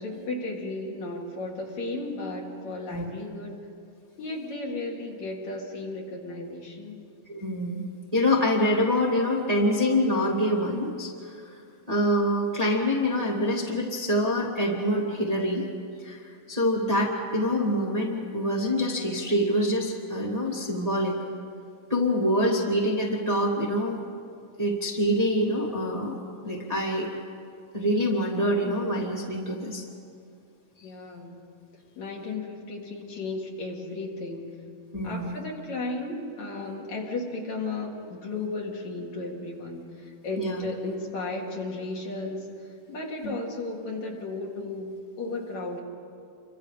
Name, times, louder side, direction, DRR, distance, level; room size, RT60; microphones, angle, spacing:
voice 1, 0.0-3.7 4.2-7.0 30.8-31.4 32.0-34.5 35.0-45.8, left 2 dB, 60° left, -1 dB, 3.5 m, -34 dB
voice 2, 7.3-7.8 8.1-11.5 11.9-15.6 16.0-21.1 21.9-24.0 24.6-26.2 26.4-27.1 27.7-29.9 34.9-35.4 40.4-40.7, equal, 15° right, -3 dB, 2.0 m, -25 dB
29.0 x 24.5 x 5.1 m, 2.4 s
omnidirectional pair, 3.7 m